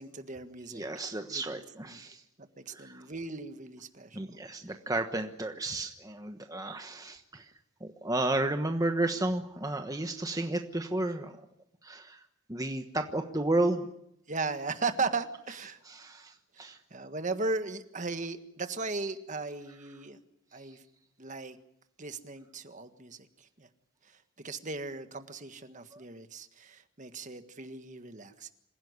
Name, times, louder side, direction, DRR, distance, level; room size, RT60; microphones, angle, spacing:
voice 1, 0.0-0.8 1.3-1.6 1.9-2.0 2.6-4.2 14.3-15.8 16.6-20.2 20.5-20.8 21.2-21.6 22.0-23.3 23.6-23.7 24.4-28.5, right 3 dB, 35° right, 9 dB, 1.6 m, -37 dB
voice 2, 0.7-2.2 2.7-3.0 4.1-7.5 7.8-11.4 11.8-12.2 12.5-13.9 15.8-16.8 20.5-20.8 25.9-26.0, right 2 dB, 15° right, 5 dB, 1.2 m, -32 dB
27.0 x 16.5 x 9.6 m, 0.75 s
head